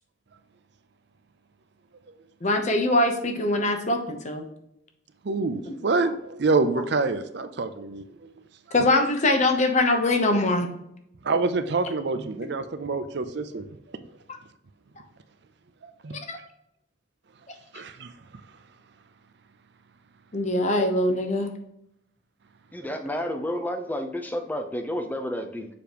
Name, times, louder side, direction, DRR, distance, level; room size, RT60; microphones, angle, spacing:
voice 1, 2.4-4.4 5.6-5.7 8.7-10.7 11.9-12.0 12.4-12.5 16.3-16.4 20.3-21.5, left 2 dB, 35° left, 0.9 m, -23 dB
voice 2, 5.2-8.0 11.2-13.7 15.8-16.2 17.7-18.1, right 3 dB, 60° right, 0.5 m, -26 dB
voice 3, 22.7-25.7, left 1 dB, 10° left, 0.6 m, -30 dB
6.8 x 5.1 x 3.0 m
head